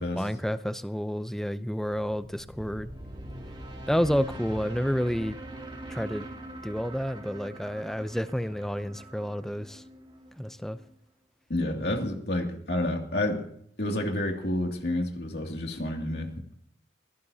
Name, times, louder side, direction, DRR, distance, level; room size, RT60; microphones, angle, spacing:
voice 1, 0.1-2.9 3.9-5.4 5.9-6.3 6.6-9.9 10.4-10.8, equal, ahead, 0.6 m, -30 dB
sound 1, 2.0-10.9, right 1 dB, 30° right, 2.8 m, -43 dB
voice 2, 11.5-13.5 13.8-16.5, left 1 dB, 60° left, 2.6 m, -29 dB
23.0 x 17.0 x 2.8 m
head